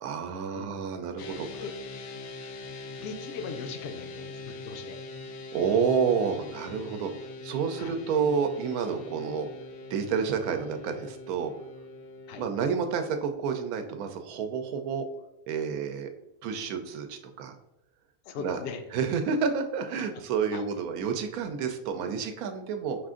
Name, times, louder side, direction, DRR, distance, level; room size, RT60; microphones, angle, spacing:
voice 1, 0.0-1.6 5.5-7.1 7.4-9.5 9.9-11.5 12.4-15.1 15.5-16.1 16.4-17.5 18.4-18.6 18.9-23.0, right 6 dB, 80° right, 6 dB, 1.0 m, -29 dB
sound 1, 1.2-13.3, left 2 dB, 85° left, 1.1 m, -42 dB
voice 2, 3.0-5.0 7.8-8.0 12.3-12.4 18.2-18.8 20.5-20.6, left 5 dB, 65° left, 6 dB, 0.7 m, -39 dB
4.8 x 2.5 x 3.6 m, 0.86 s
omnidirectional pair, 1.5 m